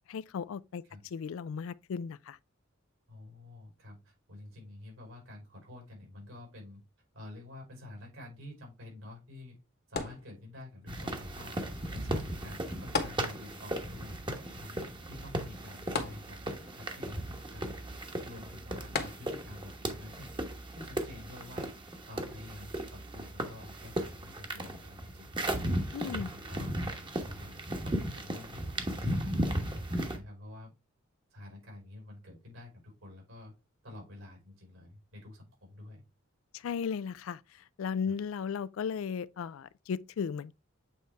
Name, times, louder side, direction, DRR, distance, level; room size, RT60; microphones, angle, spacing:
voice 1, 0.1-0.8 1.1-2.4 25.9-26.3 36.5-40.5, left 6 dB, 80° left, 0.3 m, -36 dB
voice 2, 3.1-6.8 7.1-9.6 9.9-11.6 11.9-14.2 14.5-17.8 18.2-20.3 20.7-25.3 25.9-30.7 31.3-33.5 33.8-36.0 38.0-38.1, left 2 dB, 75° right, 4.8 m, -49 dB
sound 1, 10.0-10.9 12.9-13.8 14.1-14.2 16.0-16.8 18.9-19.7 20.4-20.5, left 4 dB, 50° left, 1.2 m, -36 dB
sound 2, 10.9-30.2, right 1 dB, 25° right, 1.1 m, -36 dB
8.3 x 4.1 x 3.4 m
head